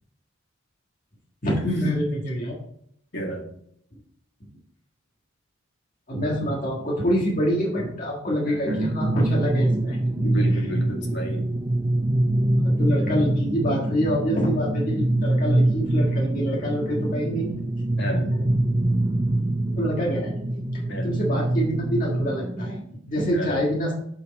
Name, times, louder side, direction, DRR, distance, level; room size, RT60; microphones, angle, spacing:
voice 1, 1.4-2.5 6.1-10.6 12.6-17.6 19.7-20.3 20.7-23.9, equal, 40° left, -3 dB, 1.6 m, -26 dB
voice 2, 3.1-3.5 8.5-8.9 10.2-11.5 18.0-18.5 20.9-21.1 23.3-23.5, equal, 60° left, 0 dB, 1.8 m, -31 dB
sound 1, 8.6-22.8, right 1 dB, 20° right, 0.5 m, -24 dB
8.5 x 4.7 x 4.2 m, 0.66 s
head